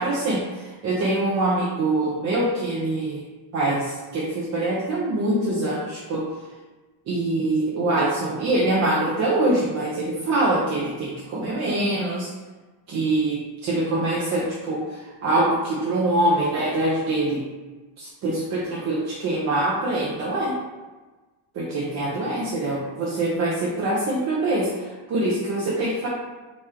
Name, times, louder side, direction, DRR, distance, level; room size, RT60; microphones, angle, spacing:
voice 1, 0.0-3.2 3.5-6.3 7.1-12.3 12.9-17.5 18.0-20.5 21.5-26.1, right 2 dB, 40° right, -5 dB, 0.6 m, -24 dB
4.3 x 3.0 x 3.6 m, 1.2 s
cardioid pair, 175°, 43 cm